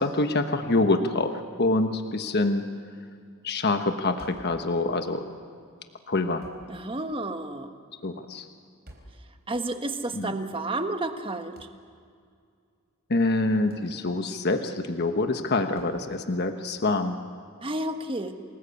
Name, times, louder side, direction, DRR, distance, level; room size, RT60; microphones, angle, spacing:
voice 1, 0.0-2.6 3.4-5.2 6.1-6.4 8.0-8.5 10.1-10.3 13.1-17.2, left 2 dB, 50° left, 7 dB, 1.2 m, -26 dB
sound 1, 4.2-4.6 6.4-6.7 8.9-9.2 11.6-11.8 13.7-13.9 15.8-16.0, right 1 dB, 50° right, 4.0 m, -49 dB
voice 2, 6.7-7.8 9.5-11.6 17.6-18.4, right 2 dB, 25° right, 7 dB, 1.4 m, -31 dB
28.0 x 20.0 x 8.3 m, 2.2 s
head